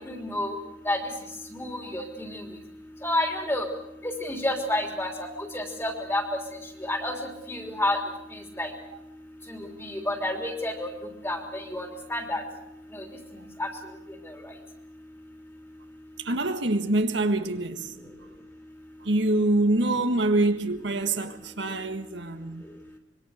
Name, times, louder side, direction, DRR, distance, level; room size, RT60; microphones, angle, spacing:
voice 1, 0.1-0.5 0.9-1.0 1.5-2.4 3.0-3.7 4.2-5.1 5.5-6.2 6.9-7.1 7.5-8.0 8.6-8.7 9.8-10.9 11.2-12.4 13.6-13.7, left 1 dB, 15° left, 3.3 m, -29 dB
voice 2, 16.2-17.9 19.0-22.6, right 2 dB, 70° right, 1.6 m, -25 dB
25.5 x 23.0 x 6.6 m
head